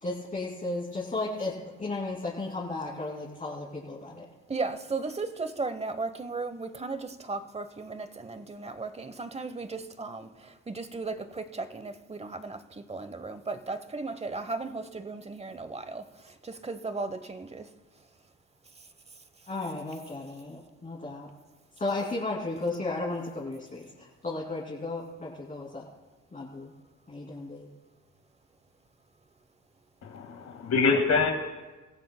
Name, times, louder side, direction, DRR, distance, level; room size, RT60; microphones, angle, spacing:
voice 1, 0.0-4.2 19.5-21.3 21.8-25.9 26.3-26.7 27.1-27.7, left 2 dB, 25° left, -4 dB, 2.6 m, -34 dB
voice 2, 4.5-17.7, right 3 dB, 20° right, 10 dB, 0.9 m, -36 dB
voice 3, 30.0-31.3, left 4 dB, 60° left, 2 dB, 1.8 m, -25 dB
24.0 x 15.5 x 2.2 m, 1.2 s
cardioid pair, 90°, 30 cm